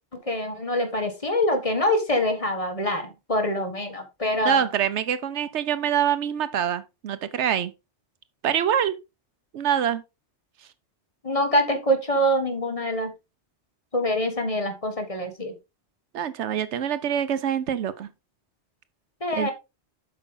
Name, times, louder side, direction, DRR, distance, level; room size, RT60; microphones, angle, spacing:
voice 1, 0.2-4.7 11.2-13.1 13.9-15.5 19.2-19.5, equal, 30° left, 1.5 m, -25 dB
voice 2, 4.4-7.7 8.4-8.9 9.5-10.0 16.1-18.1 19.3-19.5, right 9 dB, 80° right, 1.0 m, -25 dB
8.1 x 6.0 x 3.8 m
omnidirectional pair, 1.2 m